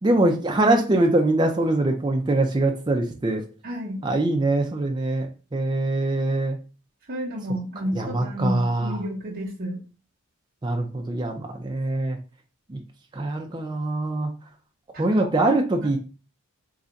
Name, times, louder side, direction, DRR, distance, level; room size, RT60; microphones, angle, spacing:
voice 1, 0.0-3.4 4.0-6.6 7.9-9.0 10.6-12.2 12.7-12.8 13.1-14.3 15.0-16.0, right 2 dB, 20° right, 2 dB, 0.4 m, -23 dB
voice 2, 3.6-4.0 7.1-9.8 14.9-15.6, equal, 40° right, -7 dB, 0.8 m, -31 dB
3.2 x 2.5 x 3.9 m, 0.34 s
head